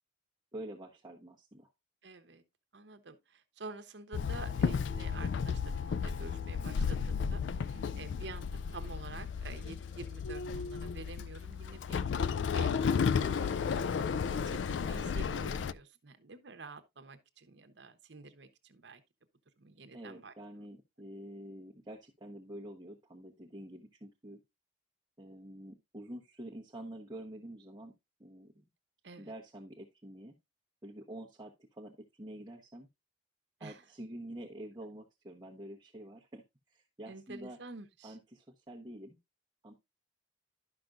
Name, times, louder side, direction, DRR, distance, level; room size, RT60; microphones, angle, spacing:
voice 1, 0.5-1.7 7.9-8.2 19.9-24.4 25.2-27.9 28.2-28.6 29.2-30.4 30.8-32.9 33.6-37.6 38.0-39.2 39.6-39.7, right 1 dB, 20° right, 1.0 m, -47 dB
voice 2, 2.0-2.4 2.7-19.0 19.6-20.3 29.0-29.3 33.6-33.8 37.1-38.2, right 3 dB, 70° right, 1.0 m, -49 dB
Walk footsteps / Chatter / Hiss, 4.1-15.7, left 6 dB, 80° left, 0.3 m, -33 dB
11.5 x 5.9 x 2.5 m
head